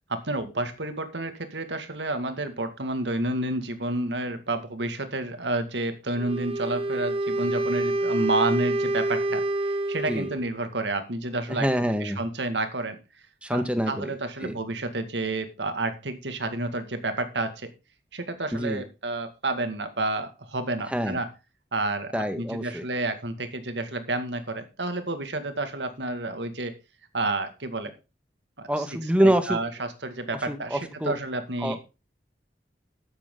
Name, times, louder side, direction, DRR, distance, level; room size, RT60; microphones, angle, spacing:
voice 1, 0.1-11.7 12.0-13.0 13.5-17.7 18.1-21.3 21.7-26.7 27.1-27.9 28.6-31.8, right 2 dB, 90° right, 8 dB, 2.2 m, -30 dB
Wind instrument woodwind instrument, 6.2-10.5, right 2 dB, 30° right, 1.1 m, -27 dB
voice 2, 11.5-12.2 13.4-14.1 14.4-14.6 18.5-18.8 20.9-21.2 22.1-22.8 28.7-29.6 30.5-31.1 31.6-31.8, equal, 5° right, 8 dB, 1.7 m, -25 dB
13.5 x 10.0 x 3.9 m, 0.29 s
head